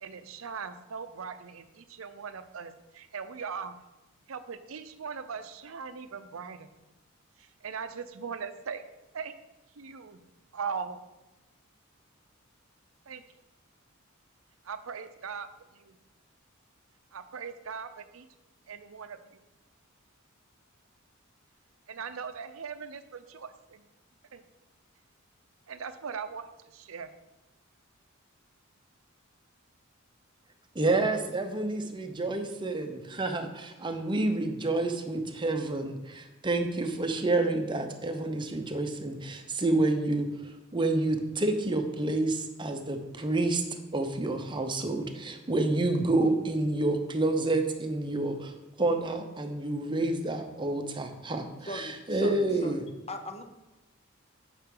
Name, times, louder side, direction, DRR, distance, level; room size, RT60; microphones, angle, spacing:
voice 1, 0.0-3.7 4.3-6.7 7.4-8.8 9.1-9.3 9.8-10.2 10.5-11.0 13.1-13.2 14.6-15.5 15.7-15.9 17.1-18.3 18.7-19.2 21.9-23.8 24.3-24.4 25.7-27.1, right 6 dB, 70° right, 10 dB, 0.6 m, -39 dB
voice 2, 30.7-43.6 43.9-52.8, right 2 dB, 25° right, 5 dB, 0.7 m, -29 dB
voice 3, 51.7-53.4, left 1 dB, 30° left, 6 dB, 0.7 m, -40 dB
8.6 x 5.9 x 3.8 m, 1.0 s
head